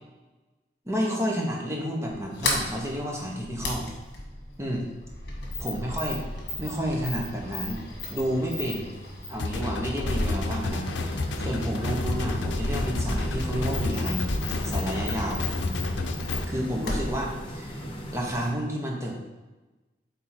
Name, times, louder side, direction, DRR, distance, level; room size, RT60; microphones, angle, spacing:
voice 1, 0.8-3.9 4.6-4.9 5.6-6.2 6.6-7.8 8.1-8.9 9.3-14.3 14.6-15.4 16.5-17.8 18.1-19.2, equal, 15° right, -1 dB, 1.1 m, -30 dB
Sliding door, 2.1-18.5, left 2 dB, 60° left, 1.4 m, -35 dB
sound 1, 9.4-16.5, left 2 dB, 85° left, 0.6 m, -30 dB
sound 2, 10.4-18.5, equal, 30° left, 0.9 m, -38 dB
8.5 x 3.6 x 4.4 m, 1.1 s
head